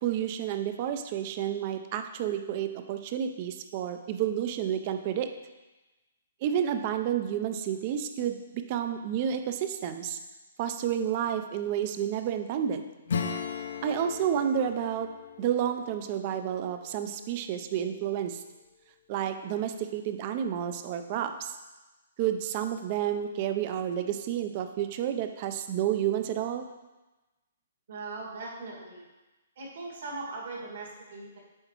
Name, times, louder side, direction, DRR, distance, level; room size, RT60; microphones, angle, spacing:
voice 1, 0.0-5.3 6.4-10.2 10.6-12.8 13.8-15.1 15.4-18.4 19.1-21.5 22.2-26.6, right 9 dB, 30° right, 8 dB, 0.4 m, -30 dB
Acoustic guitar / Strum, 13.1-17.4, left 6 dB, 65° left, 0.5 m, -37 dB
voice 2, 27.9-29.1 29.5-31.4, right 3 dB, 60° right, -3 dB, 1.8 m, -39 dB
7.8 x 4.5 x 2.9 m, 1.1 s
hypercardioid pair, 165°, 0 cm